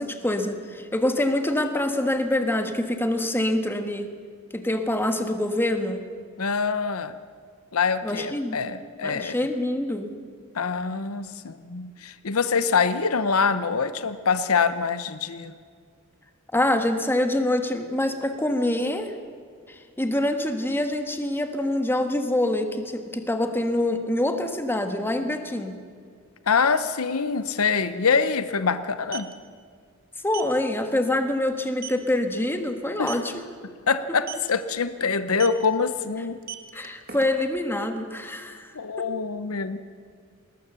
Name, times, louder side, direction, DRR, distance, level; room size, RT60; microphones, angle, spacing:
voice 1, 0.0-4.1 4.5-6.1 8.0-8.6 9.0-10.1 16.5-19.2 19.7-25.8 30.2-33.4 36.7-38.7, left 1 dB, 10° left, 6 dB, 1.4 m, -25 dB
voice 2, 6.4-7.1 7.7-9.4 10.5-15.5 26.5-29.3 33.0-33.2 33.9-36.4 38.7-39.8, left 5 dB, 75° left, 12 dB, 0.8 m, -25 dB
sound 1, 27.3-27.4 27.6-27.8 28.8-29.3 30.3-30.5 31.0-31.1 31.5-31.6 31.8-32.1 33.0-33.3 34.2-34.5 35.3-35.7 36.3-37.6, right 10 dB, 45° right, 1.5 m, -37 dB
20.0 x 19.0 x 6.9 m, 2.1 s
head